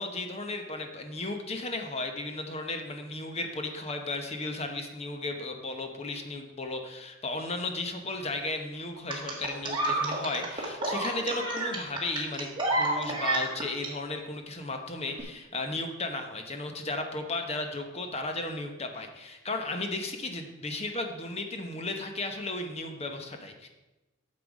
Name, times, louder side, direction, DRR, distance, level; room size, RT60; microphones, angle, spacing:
voice 1, 0.0-23.7, left 2 dB, 30° left, 5 dB, 0.9 m, -35 dB
sound 1, 9.1-13.9 15.1-15.2, right 2 dB, 25° right, 1.7 m, -30 dB
9.1 x 6.8 x 4.8 m, 1.0 s
head